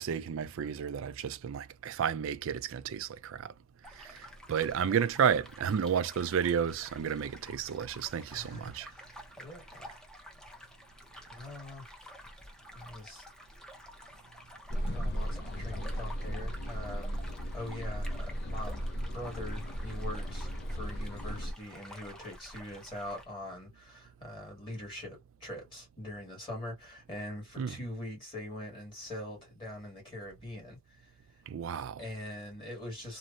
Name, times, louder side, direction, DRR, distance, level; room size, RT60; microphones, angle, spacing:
voice 1, 0.0-3.5 4.0-8.9 27.6-27.8 31.5-32.0, right 7 dB, 70° right, 0.4 m, -32 dB
sound 1, 3.8-23.3, equal, 5° left, 0.6 m, -51 dB
voice 2, 8.3-10.0 11.3-11.9 12.7-13.3 14.8-17.3 17.5-31.1 32.0-33.2, left 1 dB, 25° left, 1.7 m, -43 dB
sound 2, 14.7-21.5, equal, 50° left, 0.5 m, -36 dB
3.0 x 2.1 x 2.4 m
head